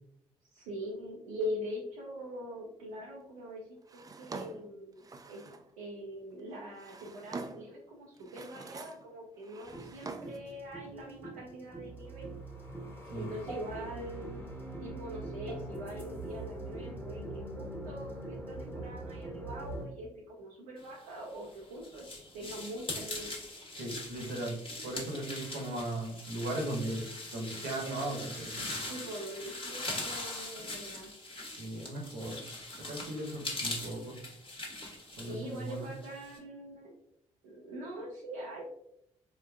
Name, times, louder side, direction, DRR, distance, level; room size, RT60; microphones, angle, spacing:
voice 1, 0.5-3.6 3.9-5.4 5.8-12.3 13.2-14.4 14.8-22.0 22.3-23.4 28.8-31.1 35.2-36.9 37.4-38.6, equal, 85° right, -4 dB, 0.5 m, -43 dB
Drawer open or close, 3.9-5.7 6.5-7.8 8.2-9.1 9.4-10.5, right 3 dB, 25° right, 0.4 m, -45 dB
sound 1, 9.7-19.9, right 2 dB, 10° left, 1.2 m, -43 dB
sound 2, 21.2-36.4, left 2 dB, 30° left, 1.0 m, -41 dB
voice 2, 23.7-24.6 24.8-28.8 31.5-32.4 32.9-34.2 35.1-35.9, right 1 dB, 70° right, 0 dB, 0.9 m, -37 dB
3.7 x 2.5 x 2.3 m, 0.75 s
hypercardioid pair, 40°, 16 cm